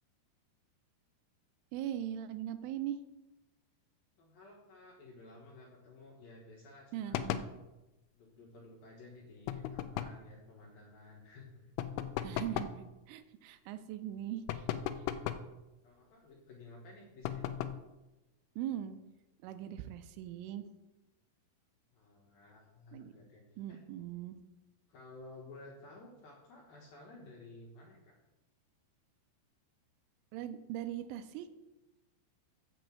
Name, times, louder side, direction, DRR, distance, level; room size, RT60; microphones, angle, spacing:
voice 1, 1.7-3.0 6.9-7.5 12.2-14.7 18.6-19.0 19.4-20.7 22.9-23.1 23.6-24.4 30.3-31.5, right 11 dB, 85° right, 10 dB, 3.1 m, -40 dB
voice 2, 4.2-7.3 8.1-11.7 15.8-17.4 21.9-23.4 23.7-23.8 24.9-28.2, left 2 dB, 65° left, -2 dB, 2.4 m, -54 dB
sound 1, 7.1-7.6 9.5-10.2 11.8-12.8 14.5-15.5 17.2-17.9, left 10 dB, 80° left, 2.8 m, -37 dB
7.8 x 6.4 x 7.5 m, 1.0 s
omnidirectional pair, 5.7 m